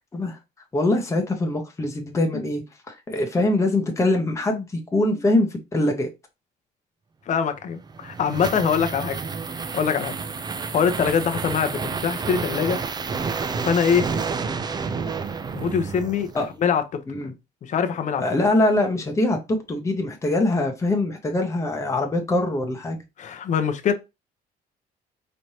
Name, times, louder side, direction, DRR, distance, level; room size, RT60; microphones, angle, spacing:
voice 1, 0.7-2.6 2.9-6.1 16.3-16.5 17.1-17.3 18.2-23.0, left 2 dB, 15° left, 0.9 m, -23 dB
voice 2, 7.3-9.2 9.7-10.1 10.7-12.8 13.6-14.1 15.5-17.0 17.6-18.2 23.2-23.9, left 7 dB, 45° left, 0.7 m, -23 dB
sound 1, 7.7-16.6, right 5 dB, 25° right, 0.4 m, -30 dB
4.3 x 3.2 x 2.8 m
cardioid pair, 110°, 17 cm